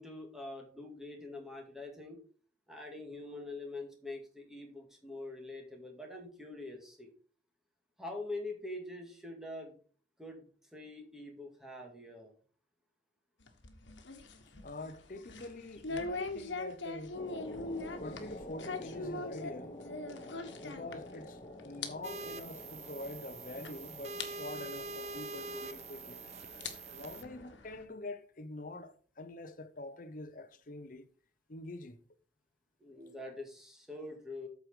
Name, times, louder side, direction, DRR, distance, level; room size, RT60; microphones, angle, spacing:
voice 1, 0.0-2.2 2.7-7.1 8.0-9.8 10.2-10.4 10.7-12.3 32.8-34.5, left 2 dB, ahead, 2.1 m, -44 dB
sound 1, 13.4-21.3 21.6-21.9 22.2-22.3 23.1-23.2 23.6-23.7 24.2-24.3 25.6-25.7 26.4-27.8, left 3 dB, 80° left, 1.4 m, -42 dB
voice 2, 14.6-17.2 18.0-19.8 20.6-26.2 26.9-31.1 31.5-32.0, left 2 dB, 45° left, 0.8 m, -45 dB
sound 2, 17.1-27.6, left 1 dB, 25° left, 1.1 m, -49 dB
sound 3, 22.0-27.2, right 3 dB, 35° right, 0.6 m, -45 dB
8.4 x 4.8 x 6.1 m
head